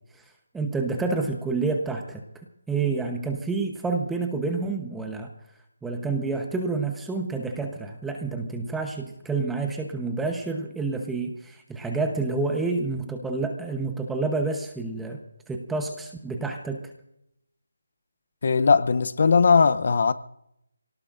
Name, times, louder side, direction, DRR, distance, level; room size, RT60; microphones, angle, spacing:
voice 1, 0.5-2.2 2.7-5.3 5.8-15.2 15.5-16.8, right 3 dB, 5° right, 0.9 m, -28 dB
voice 2, 18.4-20.1, left 5 dB, 50° left, 0.7 m, -19 dB
27.5 x 18.0 x 2.6 m
figure-of-eight pair, 165°, 0 cm